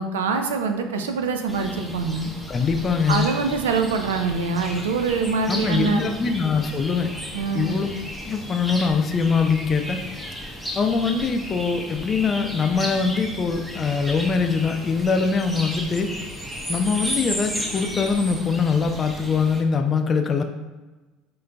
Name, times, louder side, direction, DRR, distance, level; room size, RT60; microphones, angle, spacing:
voice 1, 0.0-2.3 3.1-6.1 7.3-7.8, right 4 dB, 85° right, 6 dB, 0.3 m, -24 dB
sound 1, 1.5-19.6, equal, 5° right, 0.7 m, -34 dB
voice 2, 2.5-3.3 5.5-7.1 7.5-7.9 8.2-10.0 10.8-16.1 16.7-20.4, left 5 dB, 35° left, 6 dB, 0.4 m, -23 dB
3.8 x 3.8 x 2.2 m, 1.2 s
hypercardioid pair, 80°, 0 cm